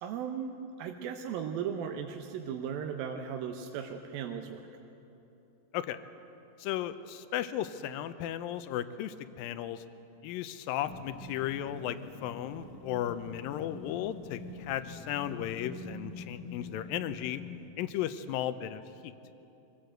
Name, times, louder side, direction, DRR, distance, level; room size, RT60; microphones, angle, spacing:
voice 1, 0.0-4.6, right 7 dB, 80° right, 4 dB, 2.7 m, -37 dB
voice 2, 6.6-9.8 10.2-17.4 17.8-19.1, left 11 dB, 85° left, 12 dB, 2.4 m, -35 dB
sound 1, 10.9-17.6, left 3 dB, 50° left, 1.5 m, -45 dB
24.0 x 17.0 x 7.9 m, 2.9 s
omnidirectional pair, 4.2 m